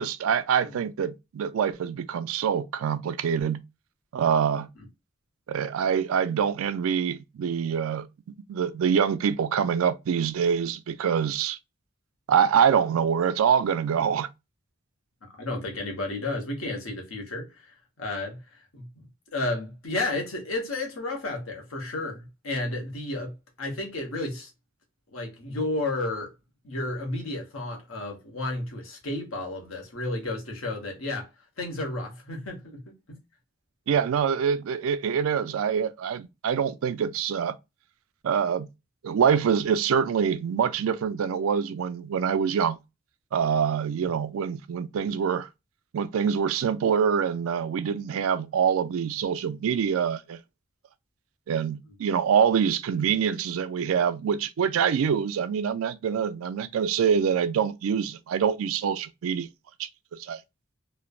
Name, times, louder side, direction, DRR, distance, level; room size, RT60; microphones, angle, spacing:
voice 1, 0.0-3.6 4.1-4.7 5.5-8.1 8.5-11.6 12.3-14.3 33.9-37.6 38.2-38.7 39.0-42.8 43.3-45.5 45.9-50.4 51.5-59.5 59.8-59.9 60.2-60.4, right 7 dB, 85° right, 0.3 m, -25 dB
voice 2, 15.4-17.5 18.0-18.4 18.7-19.0 19.3-23.3 23.6-24.5 25.1-26.3 26.6-31.3 31.6-32.8 33.1-33.2, left 2 dB, 85° left, 1.0 m, -32 dB
3.1 x 2.0 x 2.3 m
head